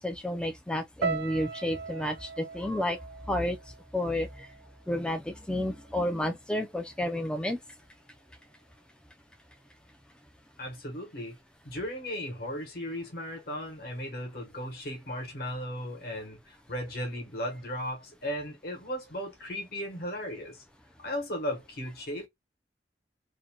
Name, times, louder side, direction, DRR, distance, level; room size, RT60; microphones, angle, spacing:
voice 1, 0.0-3.0 3.3-3.6 3.9-4.5 4.9-7.6, left 1 dB, 5° left, 0.3 m, -31 dB
sound 1, 1.0-5.2 5.5-6.3 6.8-7.1, right 5 dB, 65° right, 0.5 m, -39 dB
voice 2, 10.6-11.4 11.6-20.6 21.0-22.3, equal, 55° left, 1.0 m, -36 dB
2.6 x 2.1 x 2.8 m
head